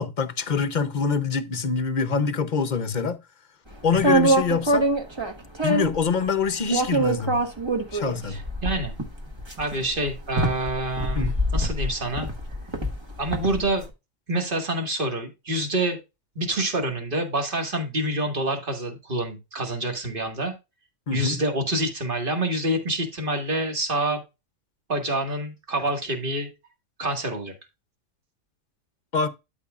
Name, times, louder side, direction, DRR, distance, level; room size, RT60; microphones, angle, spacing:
voice 1, 0.0-3.2 3.8-4.9 5.6-7.4 7.9-8.4 11.1-11.3 21.1-21.4 29.1-29.3, left 5 dB, 45° left, 0.7 m, -25 dB
sound 1, 3.9-6.0 6.7-13.7, right 1 dB, 20° right, 1.3 m, -24 dB
voice 2, 8.3-8.9 9.6-12.3 13.2-13.8 14.3-16.0 16.4-20.5 21.1-24.2 24.9-26.5 27.0-27.5, right 1 dB, 40° right, 2.0 m, -27 dB
12.5 x 5.2 x 2.4 m
omnidirectional pair, 1.4 m